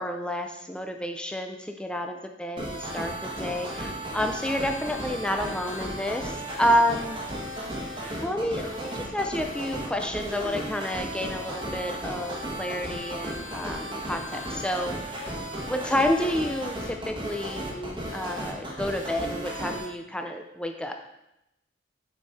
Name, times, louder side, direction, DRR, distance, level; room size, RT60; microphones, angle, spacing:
voice 1, 0.0-7.2 8.0-15.2 15.6-21.0, left 1 dB, 5° left, 4 dB, 0.4 m, -29 dB
sound 1, 2.6-19.9, right 1 dB, 25° right, 1.3 m, -35 dB
6.8 x 5.3 x 4.2 m, 0.87 s
head